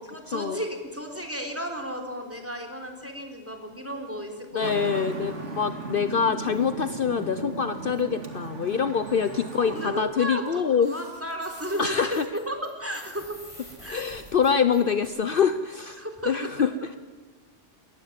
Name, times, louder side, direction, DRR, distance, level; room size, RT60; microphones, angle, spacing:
voice 1, 0.1-5.6 9.6-13.4 13.8-14.0 16.0-16.5, equal, 10° right, 4 dB, 3.6 m, -34 dB
voice 2, 4.5-10.9 11.8-12.2 13.9-16.9, left 6 dB, 55° left, 11 dB, 0.9 m, -25 dB
Traffic noise roadway noise, 4.6-10.0, right 3 dB, 90° right, 2.6 m, -36 dB
sound 1, 9.1-9.8 10.4-10.5 10.8-15.1, equal, 25° left, 6.4 m, -49 dB
22.5 x 18.5 x 7.5 m, 1.4 s
omnidirectional pair, 1.2 m